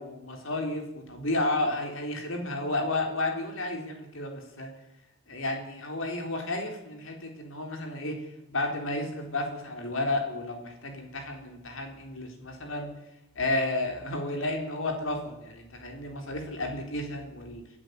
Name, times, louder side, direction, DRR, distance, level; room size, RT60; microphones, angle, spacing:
voice 1, 0.0-4.7 5.3-8.2 8.5-12.9 13.4-17.6, left 2 dB, 75° left, 3 dB, 4.0 m, -32 dB
24.0 x 13.0 x 8.3 m, 0.91 s
head